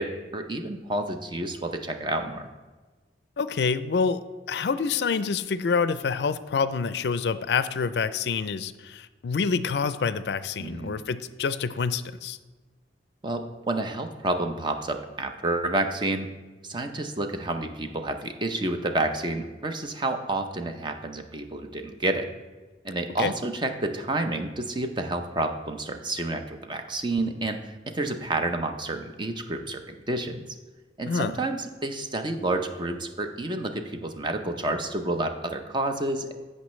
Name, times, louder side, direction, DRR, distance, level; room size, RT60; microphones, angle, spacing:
voice 1, 0.0-2.5 10.6-11.0 13.2-16.3 16.6-22.3 22.8-30.4 31.0-36.3, right 2 dB, 25° right, 6 dB, 0.6 m, -29 dB
voice 2, 3.4-4.2 4.5-12.4 23.2-23.3 31.1-31.4, left 5 dB, 65° left, 14 dB, 0.4 m, -27 dB
14.5 x 5.5 x 3.2 m, 1.3 s
head